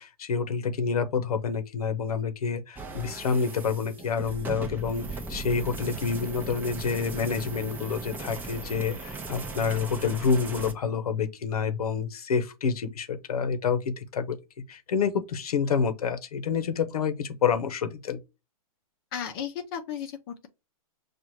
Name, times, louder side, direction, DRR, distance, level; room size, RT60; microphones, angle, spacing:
voice 1, 0.0-14.4 14.7-18.2, left 6 dB, 85° left, 0.9 m, -28 dB
sound 1, 2.8-10.7, right 3 dB, 10° right, 0.6 m, -38 dB
voice 2, 19.1-20.5, left 8 dB, 40° left, 0.6 m, -35 dB
6.1 x 2.4 x 3.0 m
hypercardioid pair, 145°, 19 cm